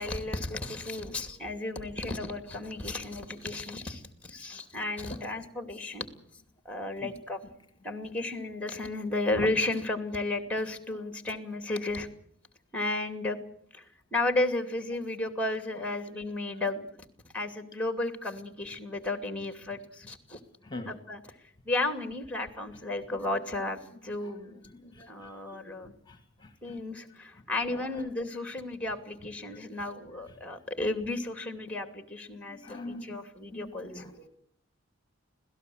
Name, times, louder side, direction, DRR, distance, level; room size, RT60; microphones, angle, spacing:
voice 1, 0.0-6.1 6.6-7.4 7.8-12.1 12.7-13.4 13.7-16.9 17.3-20.4 20.9-21.2 21.6-24.6 25.1-25.9 26.6-34.0, left 2 dB, 5° left, 8 dB, 2.6 m, -33 dB
voice 2, 24.7-25.8 26.1-26.8 27.7-27.9 29.7-29.8 30.3-30.4 32.5-33.2 33.5-34.3, left 2 dB, 20° left, 7 dB, 2.1 m, -44 dB
26.5 x 17.5 x 7.9 m, 0.66 s
head